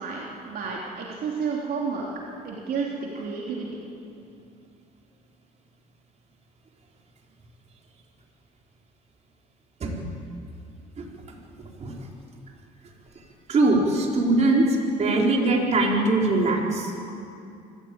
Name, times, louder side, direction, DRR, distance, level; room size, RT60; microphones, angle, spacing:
voice 1, 0.0-2.1 2.4-3.7, right 5 dB, 65° right, -3 dB, 3.4 m, -31 dB
voice 2, 13.5-14.6 15.0-17.1, right 2 dB, 40° right, -1 dB, 4.6 m, -21 dB
24.0 x 15.5 x 8.9 m, 2.6 s
cardioid pair, 110°, 17 cm